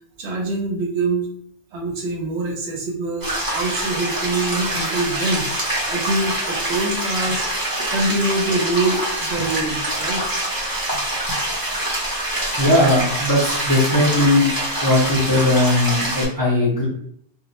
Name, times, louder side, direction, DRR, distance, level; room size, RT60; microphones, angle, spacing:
voice 1, 0.2-1.3 1.7-10.2, right 2 dB, 70° right, 0 dB, 0.8 m, -25 dB
sound 1, 3.2-16.3, right 1 dB, 25° right, 0.6 m, -25 dB
voice 2, 12.6-14.5 14.8-16.9, left 1 dB, 20° left, -7 dB, 0.6 m, -18 dB
2.3 x 2.0 x 2.8 m, 0.67 s
omnidirectional pair, 1.2 m